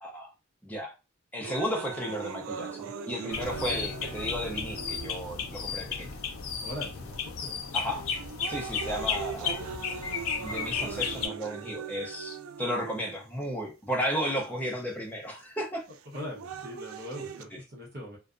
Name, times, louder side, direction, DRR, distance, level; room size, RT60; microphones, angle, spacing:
voice 1, 0.6-0.9 1.3-6.1 7.7-8.1 8.5-9.6 10.3-15.8, equal, 10° left, 0 dB, 0.5 m, -34 dB
sound 1, 1.4-5.5 6.2-6.3 7.1-7.4 7.9-13.4 14.4-14.5 15.9-17.4, right 7 dB, 80° right, 0.3 m, -40 dB
sound 2, 3.3-11.3, left 6 dB, 85° left, 0.5 m, -34 dB
voice 2, 6.6-7.6 8.8-9.1 16.1-18.2, left 1 dB, 50° right, -2 dB, 0.9 m, -41 dB
2.6 x 2.2 x 2.4 m, 0.28 s
head